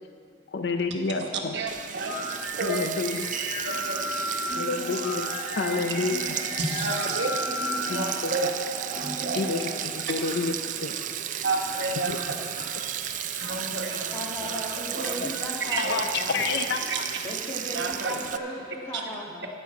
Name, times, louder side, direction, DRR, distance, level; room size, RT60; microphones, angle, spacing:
voice 1, 0.5-1.5 2.6-3.3 4.5-6.3 7.9-8.3 9.3-10.5 10.8-11.0 12.1-12.2 15.2-15.3 15.8-16.8 18.1-18.2, left 4 dB, 60° left, 6 dB, 0.5 m, -29 dB
voice 2, 1.1-2.9 3.6-4.8 5.7-5.8 6.6-8.5 9.0-9.6 11.4-12.7 13.4-14.6 14.9-15.2 15.6-15.9 16.9-17.0 17.7-18.1 18.9-19.0, right 3 dB, 65° right, 2 dB, 1.2 m, -32 dB
Sink (filling or washing), 1.7-18.4, right 10 dB, 40° right, 0.4 m, -34 dB
sound 1, 2.0-19.0, left 2 dB, 40° left, 1.4 m, -38 dB
sound 2, 4.4-10.4, right 1 dB, 20° right, 2.9 m, -39 dB
voice 3, 14.1-16.4 17.2-19.5, equal, 15° left, -3 dB, 1.6 m, -36 dB
13.5 x 5.5 x 7.4 m, 2.1 s
head